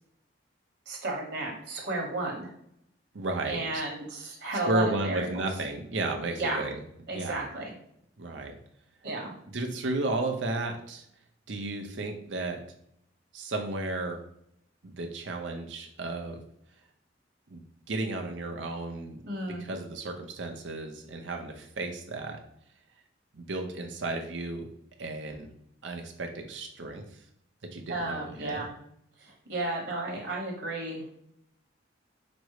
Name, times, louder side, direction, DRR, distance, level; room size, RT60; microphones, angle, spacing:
voice 1, 0.9-2.5 3.5-5.5 6.4-6.6 7.1-7.7 9.0-9.3 19.2-19.6 27.9-28.7 29.2-31.0, right 2 dB, 65° right, -1 dB, 1.2 m, -33 dB
voice 2, 3.1-3.8 4.7-6.8 7.1-7.5 8.2-8.5 9.5-11.0 11.5-12.6 13.3-14.2 14.8-16.4 17.5-17.6 17.9-22.4 23.3-24.7 25.0-25.5 25.8-27.0 27.7-28.7, right 2 dB, 80° right, 3 dB, 0.8 m, -33 dB
5.3 x 2.1 x 4.7 m, 0.72 s
head